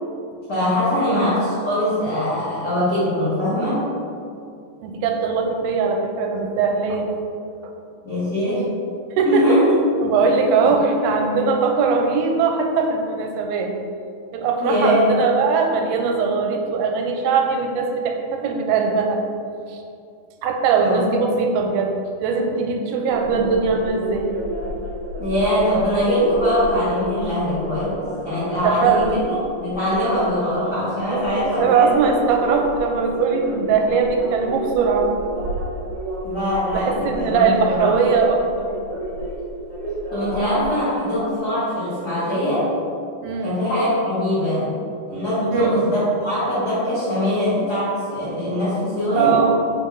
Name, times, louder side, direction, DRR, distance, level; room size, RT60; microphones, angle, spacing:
voice 1, 0.5-3.9 8.0-8.7 9.2-9.7 10.4-10.5 14.6-15.2 20.8-21.0 25.2-29.3 29.6-32.0 36.2-37.9 40.1-42.7 43.4-44.7 45.1-49.4, equal, 80° left, -11 dB, 0.9 m, -22 dB
voice 2, 4.8-7.1 7.6-7.7 9.2-9.6 10.0-13.7 14.3-19.2 19.7-19.8 20.4-21.9 22.2-24.3 28.6-29.2 31.1-35.1 36.7-38.7 43.2-43.6 45.5-45.7 49.1-49.6, right 5 dB, 85° right, 3 dB, 2.6 m, -20 dB
sound 1, 23.1-40.7, right 1 dB, 55° right, 2.6 m, -31 dB
5.7 x 4.6 x 4.6 m, 2.5 s
omnidirectional pair, 4.5 m